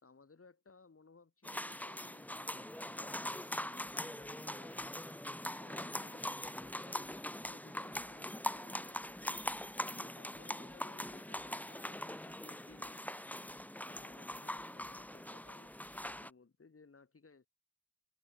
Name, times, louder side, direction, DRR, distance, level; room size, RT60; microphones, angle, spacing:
voice 1, 0.0-3.3 3.7-5.0 5.6-9.3 9.9-13.0 13.9-17.5, left 4 dB, 40° left, 3.6 m, -62 dB
sound 1, 1.4-16.3, left 1 dB, 5° left, 1.1 m, -42 dB
sound 2, 7.4-16.2, right 1 dB, 15° right, 6.4 m, -71 dB
wide cardioid pair, 80°, 33 cm